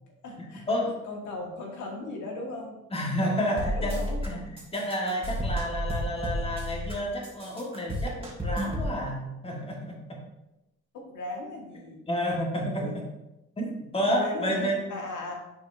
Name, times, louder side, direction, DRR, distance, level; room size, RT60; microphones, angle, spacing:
voice 1, 0.2-0.7 1.0-2.8 3.2-4.4 10.9-12.0 12.4-12.9 14.0-15.3, left 2 dB, 75° left, 0 dB, 1.7 m, -37 dB
voice 2, 2.9-10.2 12.1-13.0 13.6-14.8, equal, 20° left, -1 dB, 1.5 m, -30 dB
sound 1, 3.6-4.3 4.6-6.9 7.2-8.9, equal, 20° right, 2.0 m, -31 dB
10.5 x 4.3 x 2.6 m, 0.91 s
cardioid pair, 90°, 30 cm